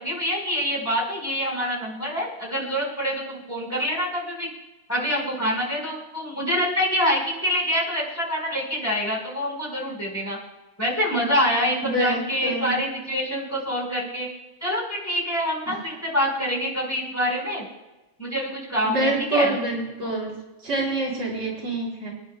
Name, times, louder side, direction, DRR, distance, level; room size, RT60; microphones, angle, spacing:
voice 1, 0.0-4.5 4.9-10.4 10.8-14.3 14.6-17.7 18.2-19.5, equal, 10° left, -3 dB, 4.5 m, -26 dB
voice 2, 11.8-12.7 15.7-15.8 18.8-20.3 20.6-22.1, right 2 dB, 80° right, -3 dB, 4.5 m, -26 dB
28.0 x 10.0 x 2.2 m, 1.0 s
omnidirectional pair, 2.1 m